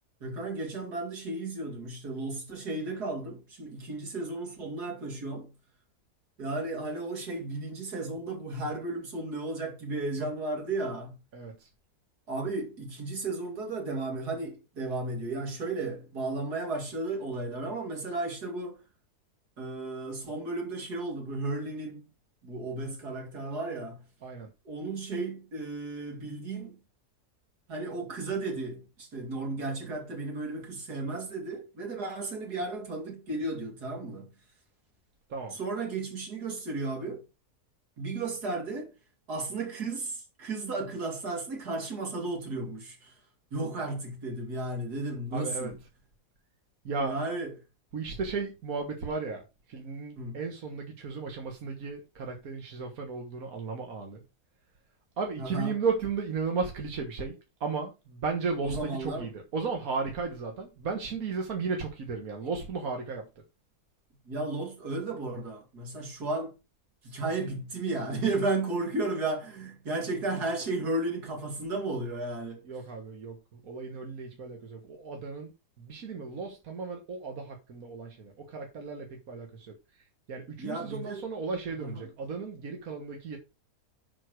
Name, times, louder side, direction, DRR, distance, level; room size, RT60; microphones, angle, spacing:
voice 1, 0.2-5.5 6.4-11.2 12.3-18.8 19.6-22.1 22.4-24.0 24.6-26.8 27.7-34.3 35.5-37.2 38.0-38.9 39.3-43.1 43.5-45.8 47.0-47.5 50.1-50.4 55.4-55.8 58.6-59.3 64.2-66.5 67.0-72.7 80.6-81.3 81.7-82.1, right 2 dB, 85° right, 3.1 m, -34 dB
voice 2, 11.3-11.7 24.2-24.5 35.3-35.6 45.3-45.7 46.9-47.1 47.9-49.4 49.7-54.2 55.2-57.4 57.6-63.3 72.7-75.5 75.8-79.7 80.3-83.4, right 4 dB, 65° right, 1.9 m, -35 dB
11.0 x 4.5 x 4.7 m
omnidirectional pair, 1.6 m